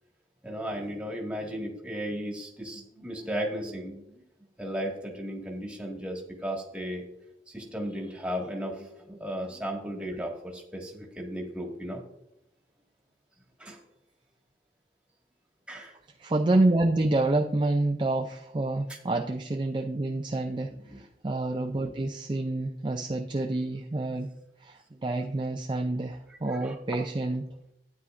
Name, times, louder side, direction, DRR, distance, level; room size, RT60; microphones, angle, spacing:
voice 1, 0.4-4.2 4.6-7.1 7.5-12.0 13.6-13.8 15.7-16.0 20.8-21.0 26.5-26.8, equal, 5° right, 0 dB, 1.7 m, -35 dB
voice 2, 16.2-24.3 24.6-27.5, right 2 dB, 25° right, 3 dB, 0.4 m, -28 dB
12.5 x 9.6 x 2.5 m, 0.82 s
head